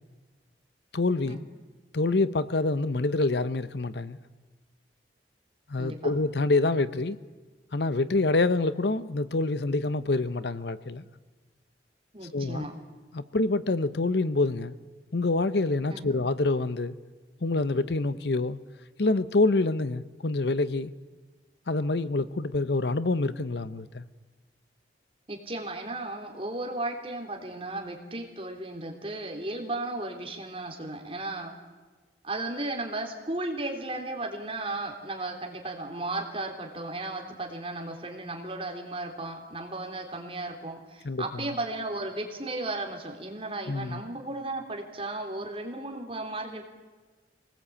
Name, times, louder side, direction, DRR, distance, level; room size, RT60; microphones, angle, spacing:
voice 1, 0.9-1.4 1.9-4.2 5.7-7.2 7.7-11.0 12.3-12.7 13.1-14.7 15.1-16.9 17.4-18.6 19.0-20.9 21.7-24.0 41.0-41.4 43.7-44.0, left 2 dB, 70° left, 14 dB, 0.8 m, -26 dB
voice 2, 5.8-6.1 12.1-12.7 15.9-16.1 25.3-31.5 32.2-46.6, right 2 dB, 30° right, 2 dB, 3.2 m, -35 dB
24.5 x 19.0 x 8.5 m, 1.3 s
head